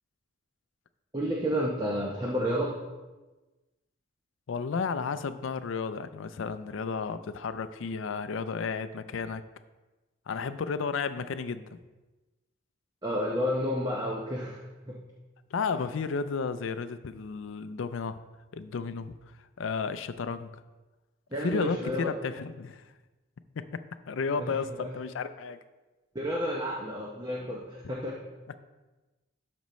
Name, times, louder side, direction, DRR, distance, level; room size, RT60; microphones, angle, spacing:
voice 1, 1.1-2.7 13.0-15.0 21.3-22.1 24.4-24.9 26.1-28.1, equal, 20° right, -3 dB, 0.8 m, -31 dB
voice 2, 4.5-9.4 10.3-11.8 15.5-18.2 18.5-19.1 19.6-20.5 21.4-22.8 23.6-25.6, left 5 dB, 75° left, 11 dB, 0.4 m, -33 dB
12.5 x 5.2 x 3.1 m, 1.2 s
head